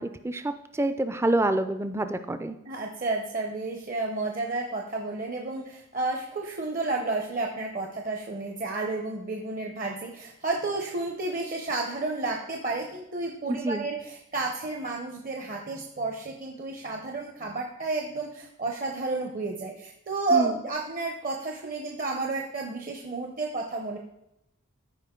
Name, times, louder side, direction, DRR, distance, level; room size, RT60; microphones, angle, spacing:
voice 1, 0.0-2.6 13.5-13.9 20.3-20.6, right 2 dB, 10° right, 9 dB, 0.4 m, -27 dB
voice 2, 2.7-24.0, right 3 dB, 40° right, 2 dB, 0.7 m, -31 dB
13.5 x 4.9 x 3.7 m, 0.84 s
head